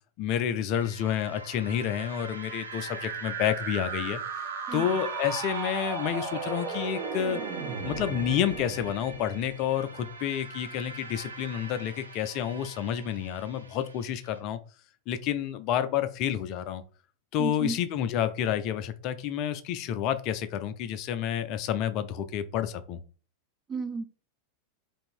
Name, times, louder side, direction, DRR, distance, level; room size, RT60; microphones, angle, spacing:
voice 1, 0.2-4.2 4.7-7.4 7.8-14.6 15.1-16.8 17.3-23.0, left 9 dB, 40° left, 0.4 m, -29 dB
sound 1, 0.7-14.4, right 3 dB, 80° right, 0.6 m, -44 dB
sound 2, 2.2-10.2, right 5 dB, 45° right, 0.7 m, -36 dB
voice 2, 17.4-17.8 23.7-24.0, right 3 dB, 25° right, 0.4 m, -33 dB
3.0 x 2.6 x 4.4 m
figure-of-eight pair, 90°, 0 cm